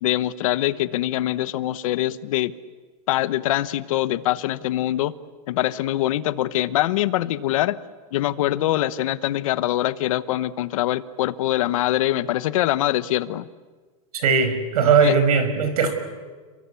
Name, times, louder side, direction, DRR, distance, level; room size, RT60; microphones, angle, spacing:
voice 1, 0.0-2.5 3.1-5.1 5.5-7.8 8.1-13.4 15.0-15.1, left 14 dB, 65° left, 14 dB, 1.1 m, -23 dB
voice 2, 14.1-15.9, right 5 dB, 80° right, 10 dB, 5.7 m, -19 dB
29.5 x 22.5 x 8.4 m, 1.4 s
supercardioid pair, 155°, 19 cm